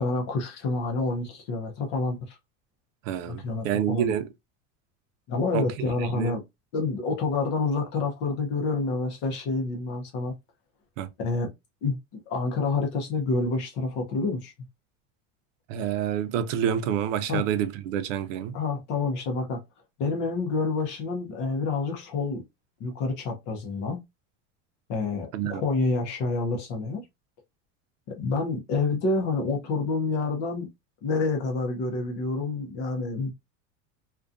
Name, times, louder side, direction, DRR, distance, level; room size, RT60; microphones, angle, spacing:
voice 1, 0.0-2.4 3.3-4.1 5.3-6.4 6.7-10.3 11.2-11.5 11.8-14.5 17.3-17.4 18.5-19.6 20.0-22.4 22.8-24.0 24.9-27.0 28.1-30.7 31.0-33.3, left 3 dB, 30° left, 0.5 m, -28 dB
voice 2, 3.1-4.3 5.5-5.6 6.1-6.3 11.0-11.1 15.7-18.5 25.3-25.6, right 9 dB, 85° right, 0.6 m, -28 dB
2.5 x 2.2 x 2.5 m
supercardioid pair, 180°, 37 cm